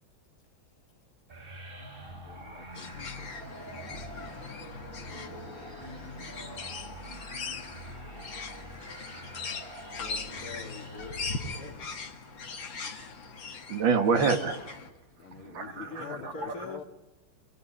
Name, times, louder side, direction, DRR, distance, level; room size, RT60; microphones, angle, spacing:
sound 1, 1.3-11.9, right 1 dB, 25° right, 3.2 m, -45 dB
voice 1, 2.2-4.6 5.2-5.6 5.9-6.5 12.8-13.0 15.2-16.8, left 7 dB, 90° left, 2.4 m, -49 dB
sound 2, 2.7-14.9, left 4 dB, 65° left, 2.8 m, -40 dB
voice 2, 9.9-11.9 15.6-16.8, left 4 dB, 45° left, 3.5 m, -44 dB
voice 3, 13.7-14.7 15.4-16.6, right 5 dB, 70° right, 2.6 m, -27 dB
27.5 x 21.5 x 9.9 m
omnidirectional pair, 2.2 m